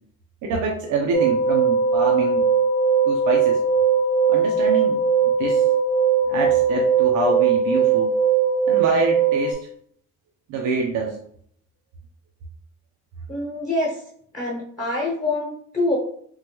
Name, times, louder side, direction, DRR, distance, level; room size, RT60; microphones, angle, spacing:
voice 1, 0.4-2.5 3.0-3.6 4.3-5.6 6.3-8.2 8.7-9.7 10.5-11.2, right 4 dB, 80° right, 0 dB, 0.6 m, -26 dB
sound 1, 1.1-9.5, right 6 dB, 45° left, 0.7 m, -19 dB
voice 2, 13.3-14.0 14.3-16.0, left 2 dB, 25° left, -4 dB, 1.1 m, -25 dB
3.7 x 2.1 x 2.9 m, 0.64 s
cardioid pair, 90°, 30 cm